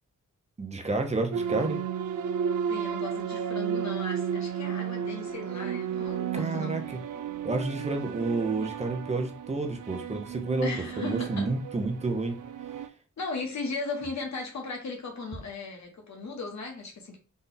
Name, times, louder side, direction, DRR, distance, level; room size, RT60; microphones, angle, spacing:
voice 1, 0.6-1.8 6.3-7.0 7.4-10.7 11.0-12.4, right 3 dB, 20° right, 0.7 m, -30 dB
sound 1, 1.3-12.9, right 8 dB, 75° right, 0.5 m, -33 dB
voice 2, 2.7-6.8 10.6-11.5 13.2-17.2, left 3 dB, 60° left, 1.3 m, -37 dB
4.1 x 2.4 x 3.8 m
wide cardioid pair, 150°, 31 cm